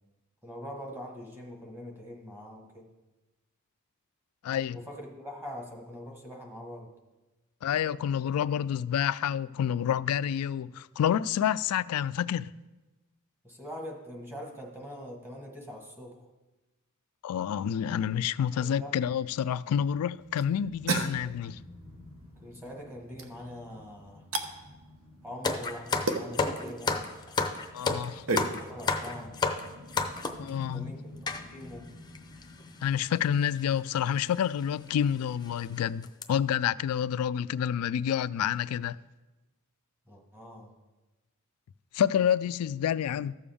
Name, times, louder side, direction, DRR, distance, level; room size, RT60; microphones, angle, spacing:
voice 1, 0.4-2.9 4.7-6.9 13.4-16.2 18.5-19.0 22.4-24.2 25.2-27.0 28.3-29.4 30.7-31.9 40.1-40.7, equal, 10° right, 1.5 m, -43 dB
voice 2, 4.4-4.8 7.6-12.5 17.2-21.6 27.7-28.2 30.4-30.9 32.8-39.0 41.9-43.4, left 9 dB, 80° left, 0.3 m, -28 dB
sound 1, 19.4-31.4, right 3 dB, 65° right, 0.9 m, -38 dB
sound 2, 20.4-35.9, left 2 dB, 35° right, 3.9 m, -51 dB
sound 3, 25.4-30.5 31.3-31.4 32.1-32.2 32.4-32.6 33.6-33.8 34.2-34.4 34.9-35.0 35.4-35.6 36.0-36.2, left 4 dB, 20° left, 0.6 m, -30 dB
14.0 x 6.9 x 3.5 m
head